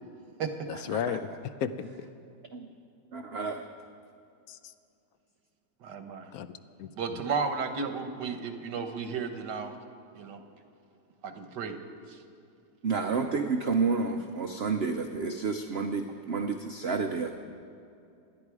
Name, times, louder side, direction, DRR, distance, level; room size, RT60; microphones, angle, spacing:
voice 1, 0.9-1.9 4.5-4.6 6.3-6.9, left 8 dB, 65° left, 11 dB, 1.1 m, -34 dB
voice 2, 3.1-3.6 12.8-17.3, right 4 dB, 55° right, 5 dB, 0.7 m, -30 dB
voice 3, 5.8-6.3 7.0-9.7 10.1-10.4 11.2-11.8 12.1-12.2, right 5 dB, 85° right, 7 dB, 1.8 m, -33 dB
27.5 x 10.5 x 4.8 m, 2.6 s
omnidirectional pair, 1.8 m